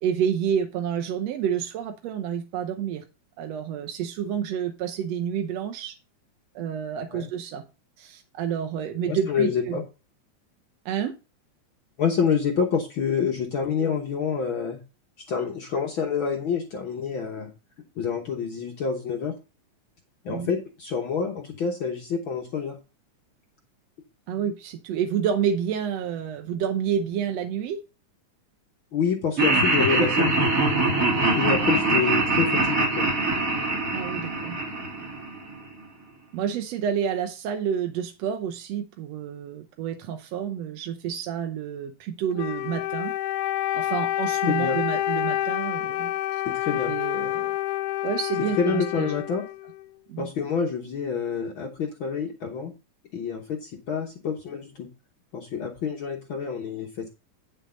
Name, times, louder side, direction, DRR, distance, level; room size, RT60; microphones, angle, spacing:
voice 1, 0.0-3.0 3.4-5.9 6.5-7.6 8.0-9.8 10.8-11.1 20.3-20.5 24.3-27.8 33.9-34.6 35.0-35.1 36.3-43.1 43.7-46.1 46.9-47.5 48.0-49.1 50.1-50.3, right 8 dB, 70° right, 6 dB, 1.7 m, -29 dB
voice 2, 9.1-9.8 12.0-14.8 15.3-17.5 17.9-19.3 20.2-22.8 28.9-30.3 31.3-33.1 44.5-44.8 46.4-46.9 48.6-49.5 50.2-52.7 53.1-54.9 55.3-57.1, left 6 dB, 60° left, 2 dB, 1.4 m, -27 dB
Laughter, 29.4-35.6, right 2 dB, 35° right, 1.7 m, -23 dB
Wind instrument woodwind instrument, 42.3-49.9, left 14 dB, 80° left, 2.1 m, -28 dB
9.4 x 6.6 x 3.8 m, 0.29 s
omnidirectional pair, 3.6 m